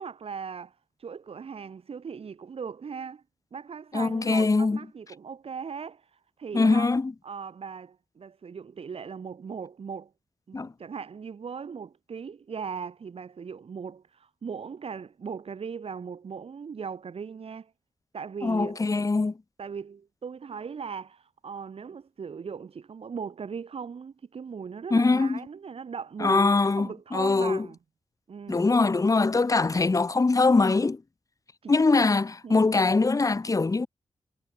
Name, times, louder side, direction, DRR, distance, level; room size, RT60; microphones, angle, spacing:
voice 1, 0.0-3.2 3.5-6.9 7.2-10.1 10.5-17.7 18.1-18.8 19.6-27.8 28.3-28.7 31.6-32.1 32.4-32.7, right 6 dB, 60° right, 0.9 m, -39 dB
voice 2, 3.9-4.8 6.5-7.1 10.5-10.7 18.4-19.3 24.9-25.4 26.2-27.7 28.5-31.0 31.7-33.9, left 3 dB, 30° left, 1.1 m, -22 dB
wide cardioid pair, 105°, 11 cm